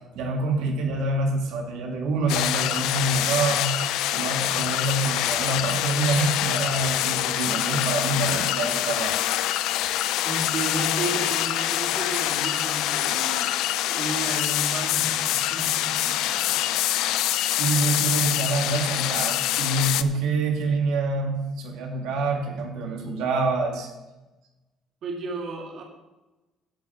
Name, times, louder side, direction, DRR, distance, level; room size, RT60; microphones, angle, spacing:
voice 1, 0.1-3.7 4.1-9.2 17.5-23.9, right 3 dB, 85° right, 1 dB, 2.4 m, -26 dB
sound 1, 2.3-20.0, left 13 dB, 80° left, 0.5 m, -25 dB
voice 2, 10.2-13.5 13.9-16.6 25.0-25.8, right 2 dB, 45° right, -1 dB, 2.0 m, -33 dB
10.5 x 5.8 x 7.9 m, 1.1 s
cardioid pair, 155°, 0 cm